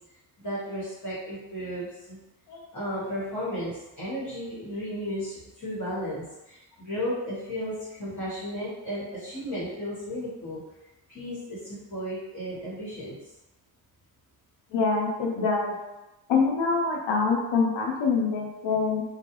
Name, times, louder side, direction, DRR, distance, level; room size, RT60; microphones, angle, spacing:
voice 1, 0.4-2.2 2.7-10.6 11.1-13.1, equal, 40° left, -9 dB, 1.2 m, -34 dB
voice 2, 14.7-15.7 16.3-19.0, left 4 dB, 70° left, 0 dB, 0.7 m, -25 dB
2.3 x 2.2 x 3.0 m, 0.99 s
supercardioid pair, 50°, 47 cm